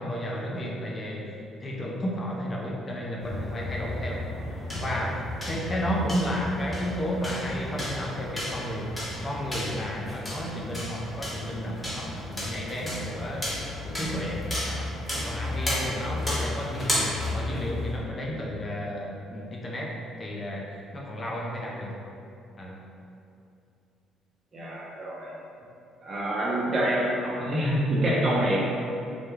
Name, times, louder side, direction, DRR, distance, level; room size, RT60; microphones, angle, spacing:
voice 1, 0.0-1.3 1.6-4.2 4.7-8.9 9.2-13.5 13.8-14.9 15.2-19.9 20.2-22.0 22.6-22.8, equal, 35° left, -3 dB, 0.4 m, -32 dB
sound 1, 3.2-18.0, left 1 dB, 10° left, 1.0 m, -33 dB
voice 2, 24.5-25.3 26.0-28.6, right 1 dB, 40° right, -5 dB, 0.7 m, -26 dB
2.2 x 2.1 x 3.1 m, 2.6 s
supercardioid pair, 70°, 0 cm